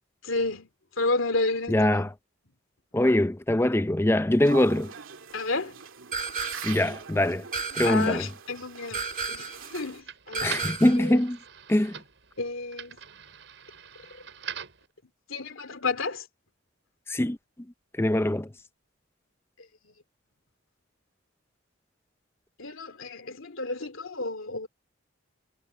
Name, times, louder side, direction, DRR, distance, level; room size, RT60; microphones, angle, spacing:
voice 1, 0.2-0.7 1.0-2.1 5.3-5.8 7.8-10.8 11.0-11.2 12.4-13.0 15.3-16.2 22.6-24.7, left 3 dB, 85° left, 2.6 m, -31 dB
voice 2, 1.7-2.1 2.9-4.9 6.6-7.4 7.8-8.3 10.4-11.4 11.7-12.0 17.1-17.4 18.0-18.5, left 1 dB, 10° left, 0.5 m, -23 dB
sound 1, 4.4-10.0, right 6 dB, 85° right, 2.3 m, -43 dB
sound 2, 6.1-6.9 7.5-8.3 8.9-9.7 10.3-11.1, right 5 dB, 40° right, 2.7 m, -33 dB
sound 3, 9.0-14.9, right 8 dB, 65° right, 5.6 m, -43 dB
head